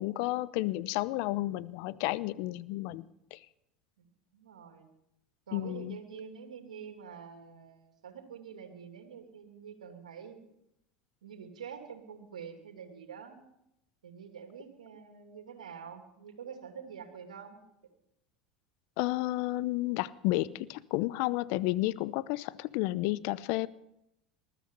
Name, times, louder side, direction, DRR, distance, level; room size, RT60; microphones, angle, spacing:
voice 1, 0.0-3.0 3.3-3.4 5.5-6.0 19.0-23.7, left 18 dB, 60° left, 18 dB, 0.8 m, -31 dB
voice 2, 4.0-4.9 5.5-10.5 11.2-13.4 14.0-17.6, right 7 dB, 90° right, 4 dB, 2.7 m, -47 dB
20.5 x 13.0 x 5.5 m, 0.80 s
hypercardioid pair, 85°, 4 cm